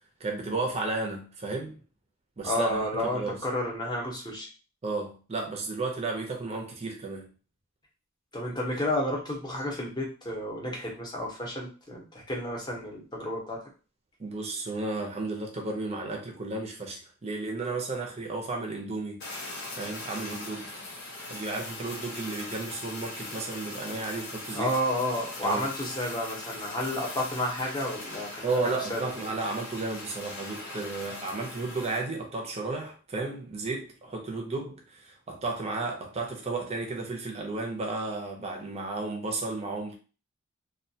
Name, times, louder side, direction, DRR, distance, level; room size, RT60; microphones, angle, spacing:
voice 1, 0.2-1.8 2.4-3.4 4.8-7.3 14.2-19.3 19.8-20.8 21.3-24.7 25.4-25.7 28.4-40.0, right 3 dB, 30° right, 0.5 m, -33 dB
voice 2, 2.4-4.5 8.3-13.6 24.5-28.5 28.9-29.0, left 1 dB, 20° left, 0.7 m, -31 dB
Fire, 19.2-32.0, left 2 dB, 50° left, 0.8 m, -40 dB
2.3 x 2.2 x 2.7 m
head